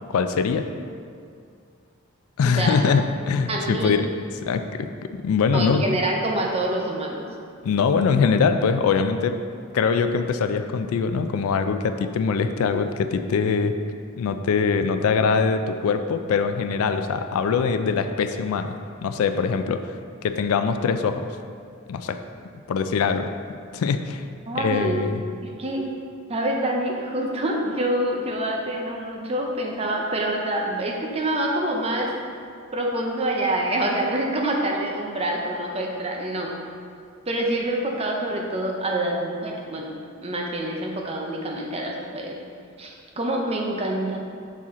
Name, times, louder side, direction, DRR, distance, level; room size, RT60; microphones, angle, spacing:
voice 1, 0.1-0.7 2.4-4.1 4.4-4.9 5.2-5.9 7.6-9.3 9.7-13.7 14.2-20.0 20.2-21.3 21.9-22.2 22.7-23.3 23.7-24.2 24.6-25.2, left 5 dB, 75° left, 8 dB, 0.3 m, -23 dB
voice 2, 2.4-2.8 3.5-3.9 5.5-7.2 24.5-25.1 25.4-25.9 26.3-32.1 32.7-36.5 37.3-39.9 40.2-42.4 42.8-44.2, right 1 dB, 30° right, 0 dB, 0.6 m, -26 dB
6.2 x 4.2 x 3.7 m, 2.3 s
head